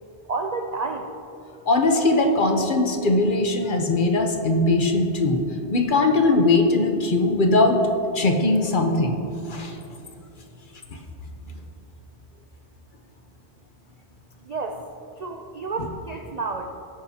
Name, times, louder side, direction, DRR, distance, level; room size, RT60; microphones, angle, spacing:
voice 1, 0.3-1.1 14.4-14.8 15.2-16.7, right 3 dB, 50° right, 3 dB, 0.5 m, -30 dB
voice 2, 1.7-5.4 5.7-7.8 8.1-9.2 9.5-9.8 10.9-11.0, left 2 dB, 45° left, 3 dB, 1.0 m, -20 dB
16.5 x 9.0 x 2.8 m, 2.8 s
omnidirectional pair, 1.2 m